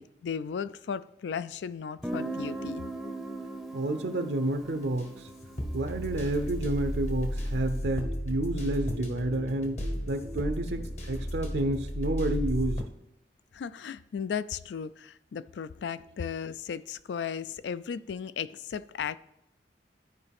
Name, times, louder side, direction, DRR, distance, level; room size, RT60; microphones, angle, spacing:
voice 1, 0.0-2.8 13.5-19.2, left 7 dB, 75° left, 0.3 m, -35 dB
Guitar, 2.0-7.6, right 2 dB, ahead, 0.6 m, -40 dB
voice 2, 3.7-5.3 5.7-12.9, right 1 dB, 65° right, 0.5 m, -30 dB
sound 1, 4.5-12.8, equal, 40° left, 1.0 m, -34 dB
13.5 x 4.7 x 3.5 m
head